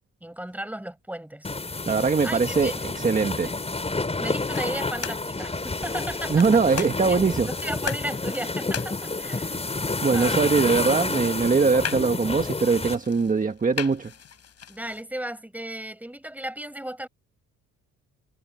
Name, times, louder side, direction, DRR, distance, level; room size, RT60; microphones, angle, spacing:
voice 1, 0.2-1.5 2.2-2.7 3.4-3.5 4.2-6.9 7.5-9.7 10.1-10.5 14.7-17.1, right 1 dB, 5° right, 6.0 m, -35 dB
sound 1, 1.4-12.9, left 3 dB, 20° left, 7.2 m, -29 dB
voice 2, 1.9-3.5 6.3-7.5 10.0-14.1, right 4 dB, 25° right, 1.5 m, -22 dB
sound 2, 4.2-15.0, left 8 dB, 55° left, 7.1 m, -40 dB
cardioid pair, 90°, 30 cm